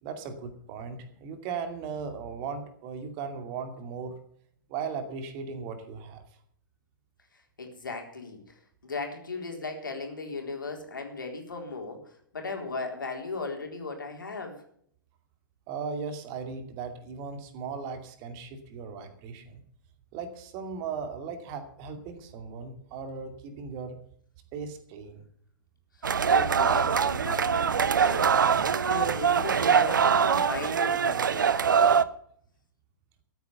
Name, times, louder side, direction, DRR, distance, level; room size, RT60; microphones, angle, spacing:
voice 1, 0.0-4.1 4.7-6.2 15.7-19.6 20.1-24.0 24.5-25.2, right 5 dB, 35° right, 7 dB, 2.4 m, -37 dB
voice 2, 7.6-8.4 8.8-14.6 26.0-31.7, left 3 dB, 70° left, 3 dB, 3.8 m, -37 dB
sound 1, 26.0-32.0, right 7 dB, 65° right, 0.8 m, -23 dB
14.0 x 9.0 x 7.1 m, 0.63 s
figure-of-eight pair, 110°, 11 cm